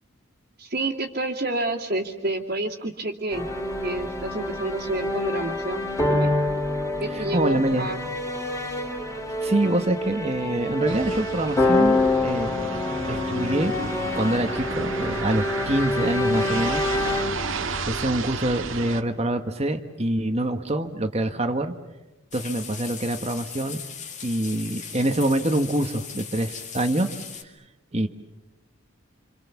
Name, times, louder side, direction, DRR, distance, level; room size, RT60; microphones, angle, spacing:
voice 1, 0.6-3.5 3.8-6.3 7.0-8.0, right 2 dB, 50° right, -5 dB, 2.4 m, -29 dB
sound 1, 3.3-18.6, left 2 dB, 15° left, 3.7 m, -27 dB
voice 2, 7.1-7.9 9.4-12.8 13.0-13.7 14.2-16.8 17.6-21.7 22.3-23.8 24.2-27.1 27.4-27.5 27.9-28.1, right 1 dB, 30° right, 7 dB, 1.3 m, -25 dB
sound 2, 10.9-19.0, right 4 dB, 70° right, 1.7 m, -32 dB
sound 3, 22.3-27.4, left 7 dB, 35° left, 2.4 m, -38 dB
27.5 x 27.0 x 7.1 m, 1.1 s
head